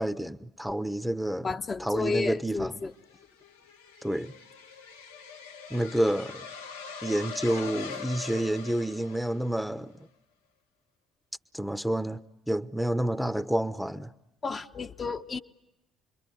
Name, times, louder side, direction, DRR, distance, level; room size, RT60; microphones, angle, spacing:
voice 1, 0.0-1.5 1.8-2.8 4.0-4.3 5.7-6.5 7.0-10.1 11.5-12.2 12.5-14.1, right 1 dB, ahead, 1.0 m, -29 dB
voice 2, 1.4-2.9 14.4-15.4, left 4 dB, 30° left, 1.0 m, -32 dB
sound 1, 2.7-9.7, left 5 dB, 85° left, 1.3 m, -42 dB
27.5 x 23.0 x 9.5 m
figure-of-eight pair, 50°, 0 cm